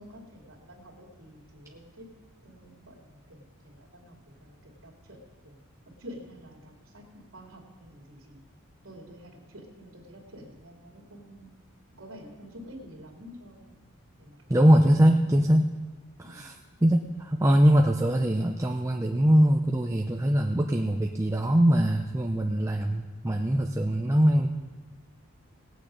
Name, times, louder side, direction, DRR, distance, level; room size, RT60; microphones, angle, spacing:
voice 1, 0.0-2.0 2.4-5.2 5.4-5.6 6.0-8.4 8.8-11.5 12.0-14.7 16.2-16.5, equal, 80° right, -2 dB, 2.6 m, -49 dB
voice 2, 14.5-15.7 16.3-16.5 16.8-24.5, equal, 15° right, 2 dB, 0.5 m, -22 dB
18.5 x 8.5 x 5.2 m, 1.3 s
head